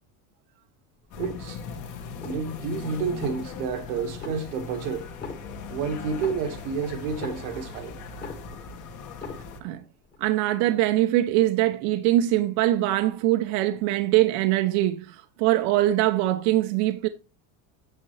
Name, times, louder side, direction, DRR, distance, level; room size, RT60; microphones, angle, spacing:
sound 1, 1.1-9.6, left 5 dB, 45° left, 1.7 m, -39 dB
sound 2, 1.1-1.8 2.1-2.7 3.1-3.8 4.1-4.8 5.1-7.8 8.1-8.8 9.1-9.8 10.1-10.2, left 4 dB, 25° left, 1.6 m, -41 dB
voice 1, 1.2-1.6 2.2-5.1 5.7-8.0, right 6 dB, 90° right, 1.6 m, -30 dB
voice 2, 10.2-17.1, right 15 dB, 60° right, 0.7 m, -23 dB
8.5 x 6.8 x 3.1 m
cardioid pair, 150°, 42 cm